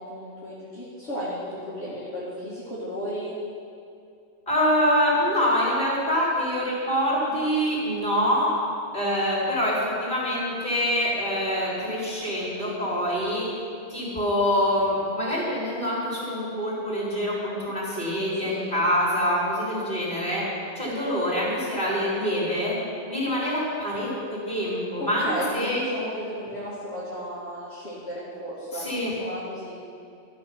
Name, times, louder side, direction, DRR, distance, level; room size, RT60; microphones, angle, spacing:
voice 1, 0.1-3.3 18.4-18.7 25.0-29.8, equal, 55° left, -11 dB, 2.6 m, -34 dB
voice 2, 4.5-8.5 8.9-13.5 13.9-20.4 20.8-22.8 23.1-25.3 25.5-25.8 28.7-29.1, equal, 40° left, -6 dB, 4.0 m, -25 dB
14.0 x 7.8 x 5.9 m, 2.5 s
omnidirectional pair, 1.3 m